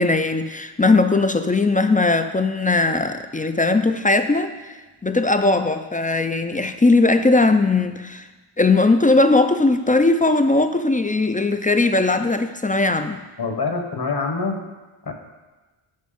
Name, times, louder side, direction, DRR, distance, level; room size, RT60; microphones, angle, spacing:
voice 1, 0.0-4.7 5.0-8.2 8.6-13.2, left 3 dB, 20° left, 9 dB, 0.3 m, -19 dB
voice 2, 13.4-14.6 15.1-15.2, left 4 dB, 50° left, 4 dB, 1.2 m, -25 dB
8.0 x 5.4 x 5.0 m, 1.2 s
wide cardioid pair, 80°, 50 cm